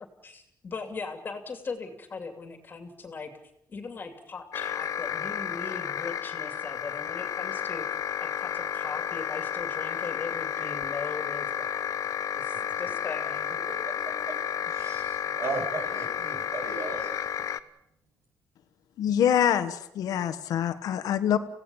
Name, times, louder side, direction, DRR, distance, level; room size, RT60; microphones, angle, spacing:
voice 1, 0.2-3.3 3.7-7.8 8.2-12.0 12.3-13.5, left 4 dB, 30° left, 6 dB, 2.7 m, -39 dB
sound 1, 4.5-17.6, left 9 dB, 60° left, 0.9 m, -32 dB
voice 2, 14.6-17.1, right 3 dB, 50° right, 3 dB, 7.7 m, -35 dB
voice 3, 19.0-21.4, left 9 dB, 75° left, 9 dB, 1.4 m, -25 dB
27.5 x 17.0 x 7.1 m, 0.77 s
cardioid pair, 145°, 6 cm